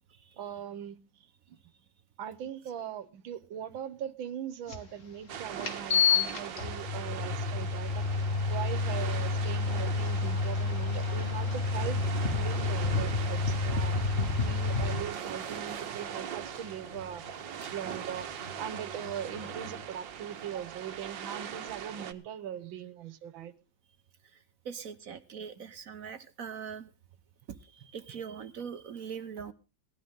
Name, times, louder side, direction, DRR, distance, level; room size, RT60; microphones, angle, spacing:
voice 1, 0.4-1.0 1.5-1.6 2.2-8.0 8.5-12.0 12.3-17.2 17.7-18.3 18.6-23.5 25.6-25.7, right 9 dB, 90° right, 1.9 m, -40 dB
sound 1, 4.7-4.8 5.6-15.0, left 4 dB, 40° left, 2.3 m, -29 dB
sound 2, 5.3-22.1, right 8 dB, 70° right, 1.7 m, -41 dB
sound 3, 10.4-19.8, equal, 25° left, 3.9 m, -50 dB
voice 2, 24.6-26.9 27.6-29.5, right 7 dB, 55° right, 1.1 m, -41 dB
18.5 x 13.0 x 3.7 m
omnidirectional pair, 2.1 m